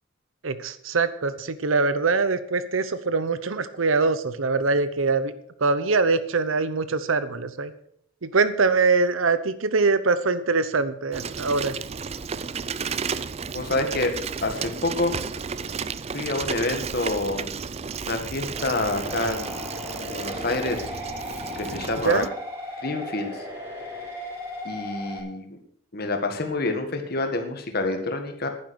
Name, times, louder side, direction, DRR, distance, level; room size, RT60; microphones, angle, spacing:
voice 1, 0.4-5.3 5.6-7.7 8.2-11.7 22.0-22.3, right 4 dB, 90° right, 13 dB, 0.9 m, -23 dB
Bicycle, 11.1-22.3, right 5 dB, 30° right, 0.4 m, -33 dB
voice 2, 13.5-14.1 14.4-15.1 16.1-17.5 18.0-19.7 20.0-20.8 21.6-22.2 22.8-23.3 24.7-25.6 25.9-28.5, left 2 dB, 50° left, 5 dB, 1.8 m, -27 dB
sound 1, 18.5-25.2, left 1 dB, 15° right, 4.3 m, -36 dB
11.0 x 9.9 x 6.3 m, 0.67 s
head